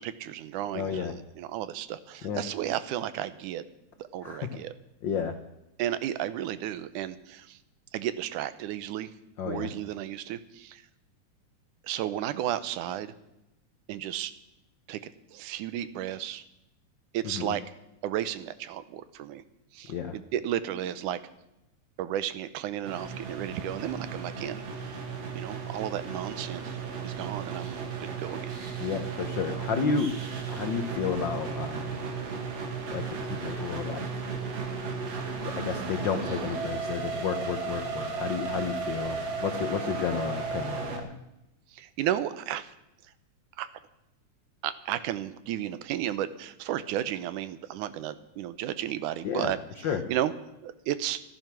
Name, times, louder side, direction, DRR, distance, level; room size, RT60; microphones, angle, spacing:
voice 1, 0.0-3.6 4.0-4.7 5.8-7.6 7.9-9.1 9.4-10.8 11.8-13.1 13.9-14.3 14.9-16.4 17.1-17.6 18.0-19.4 19.7-21.2 22.0-25.0 25.3-28.6 41.7-42.7 43.6-43.7 44.6-49.6 50.1-50.3 50.6-51.2, right 12 dB, 90° right, 14 dB, 2.4 m, -33 dB
voice 2, 0.7-1.1 2.2-2.4 4.2-4.6 5.0-5.3 9.4-9.7 17.2-17.5 19.9-20.1 28.8-30.1 30.5-32.0 32.9-34.1 35.4-41.1 49.2-49.5 49.8-50.0, left 6 dB, 75° left, 7 dB, 1.0 m, -31 dB
sound 1, 22.8-41.0, right 5 dB, 60° right, 3.1 m, -35 dB
14.5 x 14.0 x 6.1 m, 0.87 s
omnidirectional pair, 3.5 m